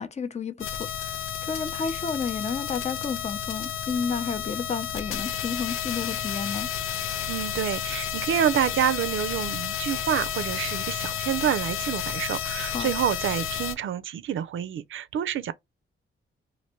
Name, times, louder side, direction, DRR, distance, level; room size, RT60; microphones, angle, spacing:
voice 1, 0.0-6.7 12.6-12.9, left 5 dB, 30° left, 0.6 m, -31 dB
sound 1, 0.6-13.7, left 9 dB, 85° left, 0.5 m, -31 dB
voice 2, 7.3-15.5, right 10 dB, 70° right, 0.4 m, -28 dB
3.1 x 2.6 x 2.9 m
cardioid pair, 90°, 21 cm